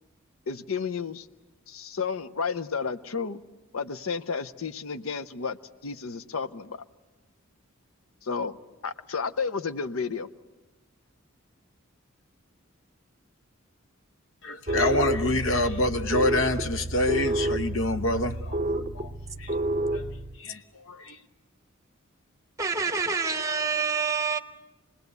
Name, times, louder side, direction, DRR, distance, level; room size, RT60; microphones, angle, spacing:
voice 1, 0.5-1.3 1.7-3.4 3.7-5.6 5.8-6.8 8.2-8.6 8.8-10.3, left 5 dB, 85° left, 0.7 m, -32 dB
voice 2, 14.4-18.6 18.9-19.1 19.4-19.5 19.9-20.0 20.4-21.2, left 2 dB, 65° left, 1.0 m, -27 dB
sound 1, 14.7-20.4, right 1 dB, 35° right, 0.7 m, -29 dB
voice 3, 22.6-24.4, right 5 dB, 15° right, 1.0 m, -27 dB
26.5 x 20.0 x 8.0 m
head